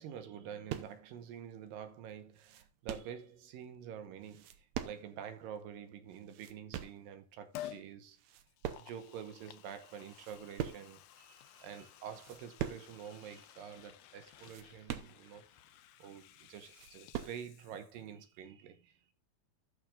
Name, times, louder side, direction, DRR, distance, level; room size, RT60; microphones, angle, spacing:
voice 1, 0.0-8.2 8.8-15.4 16.0-19.1, right 8 dB, 85° right, 2.9 m, -48 dB
sound 1, 0.7-1.1 1.7-1.8 2.1-3.2 4.2-5.3 5.6-5.7 6.1-7.1 7.6-7.9 8.2-9.2 9.5-9.6 10.0-11.0 11.5-11.7 12.1-13.0 13.2-13.3 13.7-13.8 14.3-15.5 16.0-16.1 16.4-17.4, right 11 dB, 70° right, 1.8 m, -43 dB
Liquid, 7.5-7.9 8.5-18.1 18.4-18.5, left 13 dB, 85° left, 1.5 m, -53 dB
16.5 x 6.4 x 2.5 m
omnidirectional pair, 3.9 m